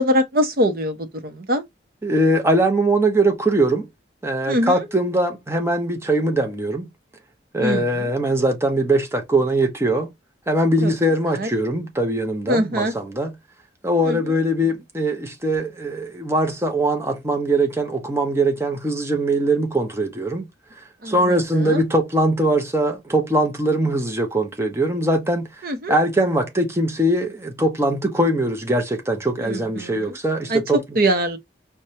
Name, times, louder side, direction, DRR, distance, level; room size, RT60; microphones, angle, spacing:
voice 1, 0.0-1.6 4.5-4.8 7.6-8.1 10.8-10.9 11.3-11.5 12.5-12.9 14.1-14.2 21.0-21.8 25.6-26.0 29.4-30.1 30.5-30.6 31.0-31.4, equal, 55° right, 0.8 m, -23 dB
voice 2, 2.0-3.9 4.2-6.9 7.5-10.1 10.5-13.3 13.8-20.5 21.1-25.5 25.9-30.8, right 1 dB, 15° right, 0.7 m, -21 dB
4.7 x 2.2 x 2.7 m
head